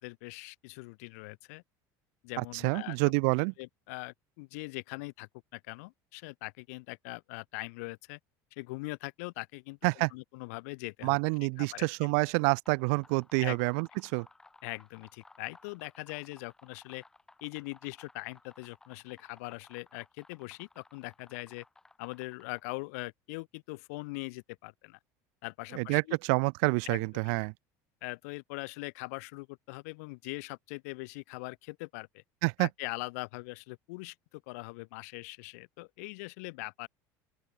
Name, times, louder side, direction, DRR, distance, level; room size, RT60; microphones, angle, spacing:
voice 1, 0.0-1.6 2.2-3.0 3.6-8.2 8.6-9.8 10.1-11.2 11.6-12.1 13.4-13.6 14.6-17.0 17.4-21.6 22.0-25.0 25.4-26.2 26.8-27.3 28.0-32.2 32.6-36.9, left 27 dB, 80° left, 1.2 m, -41 dB
voice 2, 2.4-3.5 9.8-10.1 11.0-14.3 25.7-26.0 26.3-27.5 32.4-32.7, right 39 dB, 65° right, 0.6 m, -28 dB
sound 1, 12.4-22.8, left 2 dB, 5° left, 3.8 m, -59 dB
open air
cardioid pair, 175°, 8 cm